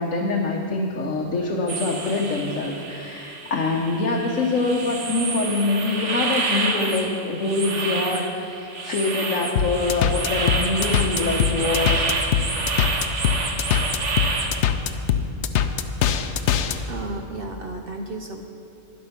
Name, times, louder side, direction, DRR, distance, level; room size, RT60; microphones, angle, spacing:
voice 1, 0.0-12.1, left 3 dB, 90° left, -1 dB, 1.4 m, -25 dB
sound 1, 1.7-14.5, right 3 dB, 70° right, 1.5 m, -28 dB
sound 2, 9.6-16.8, left 8 dB, 70° left, 0.9 m, -22 dB
voice 2, 16.9-18.4, right 2 dB, 55° right, 3 dB, 0.9 m, -33 dB
12.0 x 10.5 x 5.8 m, 2.6 s
omnidirectional pair, 1.3 m